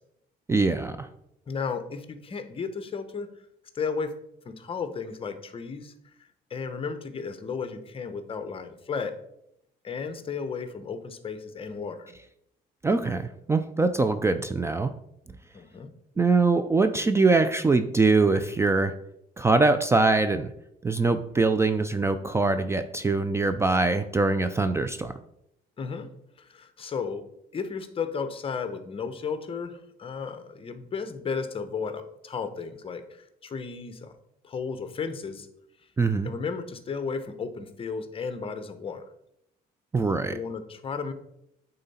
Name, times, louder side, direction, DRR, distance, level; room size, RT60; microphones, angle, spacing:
voice 1, 0.5-1.1 12.8-14.9 16.2-18.9 19.4-20.5 20.8-25.1 36.0-36.3 39.9-40.4, right 3 dB, 15° right, 10 dB, 0.4 m, -23 dB
voice 2, 1.5-3.3 3.7-4.1 4.4-5.9 6.5-9.1 9.8-12.1 15.5-15.9 25.8-26.1 26.4-27.2 27.5-34.1 34.4-35.5 36.2-39.0 40.3-41.1, left 5 dB, 35° left, 10 dB, 0.8 m, -34 dB
8.9 x 3.9 x 4.2 m, 0.78 s
cardioid pair, 110°, 17 cm